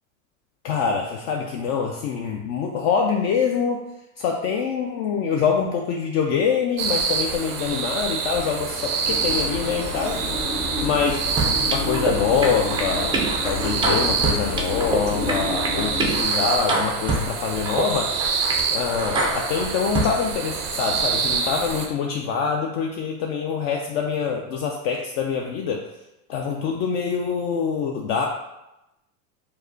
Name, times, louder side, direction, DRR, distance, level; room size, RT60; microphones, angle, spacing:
voice 1, 0.6-3.9 4.2-10.2 10.8-11.3 11.6-18.1 18.7-25.9 26.3-28.3, left 6 dB, 55° left, 1 dB, 0.5 m, -25 dB
sound 1, 6.8-21.9, right 5 dB, 85° right, 0.6 m, -27 dB
sound 2, 9.0-16.2, left 2 dB, 70° left, 1.5 m, -30 dB
sound 3, 11.4-12.1 12.4-15.0 15.3-17.3 17.7-17.8 18.2-18.6 19.0-20.1, right 2 dB, 15° right, 0.3 m, -26 dB
4.6 x 2.2 x 2.6 m, 0.91 s
hypercardioid pair, 85°, 44 cm